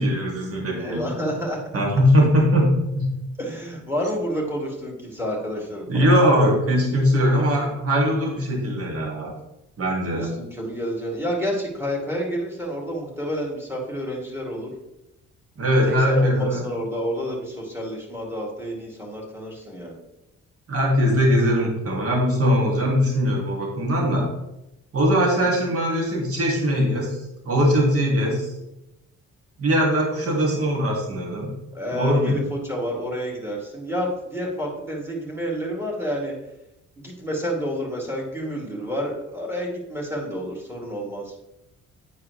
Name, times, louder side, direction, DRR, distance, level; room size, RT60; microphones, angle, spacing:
voice 1, 0.0-1.0 1.7-2.7 2.9-3.1 5.9-9.3 9.8-10.3 15.6-16.6 20.7-24.3 24.9-27.2 27.5-28.5 29.6-31.5 31.9-32.4, equal, 50° right, -1 dB, 2.2 m, -20 dB
voice 2, 0.8-1.6 3.4-6.1 10.1-14.7 15.9-20.0 31.7-36.3 37.0-41.3, equal, 10° right, -2 dB, 2.5 m, -29 dB
9.4 x 4.7 x 3.2 m, 0.89 s
cardioid pair, 90°, 30 cm